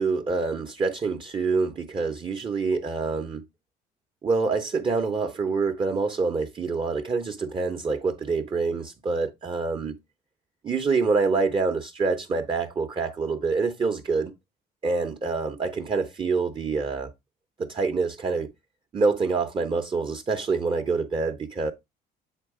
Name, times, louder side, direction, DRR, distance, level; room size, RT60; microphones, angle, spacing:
voice 1, 0.0-3.4 4.2-10.0 10.6-14.3 14.8-17.1 17.6-18.5 18.9-21.7, right 4 dB, 30° right, 0.8 m, -26 dB
8.2 x 3.1 x 4.8 m
cardioid pair, 110°, 17 cm